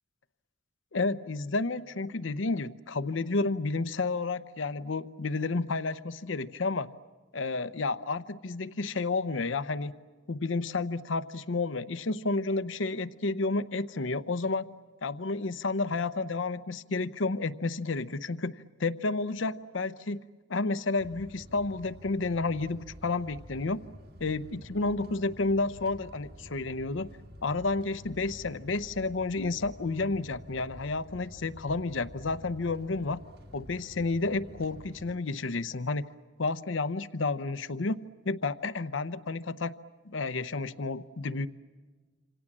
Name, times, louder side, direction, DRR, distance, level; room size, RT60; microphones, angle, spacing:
voice 1, 0.9-6.9 7.3-9.9 10.3-14.7 15.0-20.2 20.5-23.8 24.2-27.1 27.4-33.2 33.5-36.0 36.4-38.0 38.3-39.7 40.1-41.5, left 3 dB, 80° left, 13 dB, 0.8 m, -31 dB
sound 1, 21.0-35.2, equal, 55° right, 2.2 m, -49 dB
27.5 x 27.0 x 7.4 m, 1.4 s
head